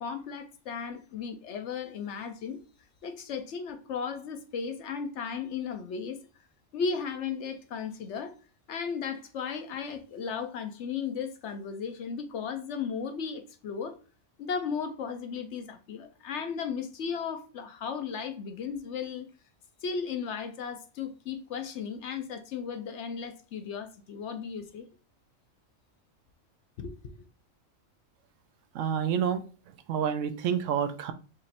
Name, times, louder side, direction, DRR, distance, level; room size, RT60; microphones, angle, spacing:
voice 1, 0.0-2.6 3.0-6.2 6.7-8.4 8.7-14.0 14.4-19.3 19.8-24.9 26.8-27.2, left 6 dB, 65° left, 0.9 m, -35 dB
voice 2, 28.7-29.4 29.9-31.1, right 8 dB, 75° right, 0.9 m, -28 dB
5.0 x 3.1 x 2.8 m
omnidirectional pair, 1.4 m